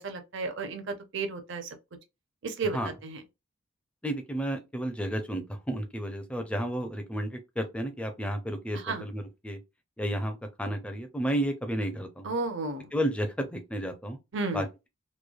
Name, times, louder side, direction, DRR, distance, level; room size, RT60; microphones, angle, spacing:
voice 1, 0.0-1.7 2.4-2.8 3.0-3.2 8.8-9.0 12.2-12.9 14.3-14.7, right 3 dB, 55° right, 0.6 m, -32 dB
voice 2, 4.0-9.6 10.0-12.3 12.9-14.2 14.5-14.9, equal, 5° left, 0.4 m, -32 dB
3.1 x 2.3 x 2.3 m
head